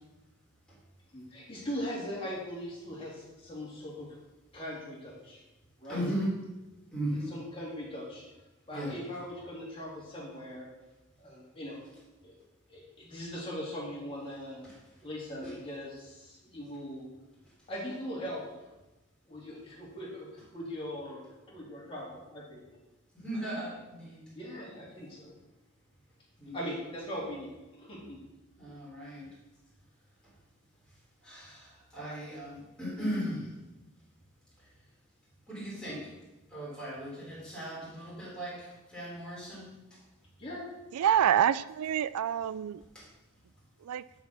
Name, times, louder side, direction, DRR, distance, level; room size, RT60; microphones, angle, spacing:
voice 1, 1.1-4.1 4.5-5.4 5.8-6.0 7.1-8.2 8.7-10.7 11.2-11.8 12.2-12.3 12.7-14.7 15.0-17.1 17.7-18.5 19.3-21.2 21.5-22.6 23.5-23.6 24.3-25.3 26.5-28.2 40.4-40.7, equal, 25° left, -5 dB, 3.2 m, -40 dB
voice 2, 5.9-6.3 6.9-7.3 8.7-8.9 15.4-15.5 23.1-24.2 26.4-26.6 28.6-29.2 31.3-31.5 31.9-33.5 35.5-36.0 36.5-38.5 38.9-39.7, equal, 5° left, -7 dB, 3.8 m, -36 dB
voice 3, 40.9-42.8 43.8-44.0, right 9 dB, 85° right, 17 dB, 0.3 m, -27 dB
11.0 x 4.9 x 6.2 m, 1.0 s
head